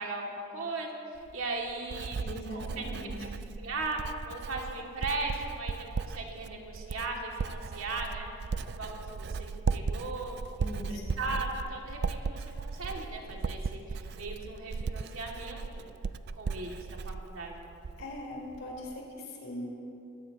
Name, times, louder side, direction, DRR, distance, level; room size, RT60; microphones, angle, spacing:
voice 1, 0.0-2.2 2.5-3.1 3.6-8.3 8.7-10.3 10.7-15.9 16.3-17.7, right 3 dB, 85° right, -1 dB, 2.4 m, -38 dB
Writing, 1.2-18.2 18.5-19.0, right 4 dB, 55° right, 0.4 m, -37 dB
voice 2, 2.2-3.1 10.6-11.1 18.0-19.7, left 1 dB, 75° left, -2 dB, 4.2 m, -40 dB
24.0 x 16.0 x 3.0 m, 2.7 s
head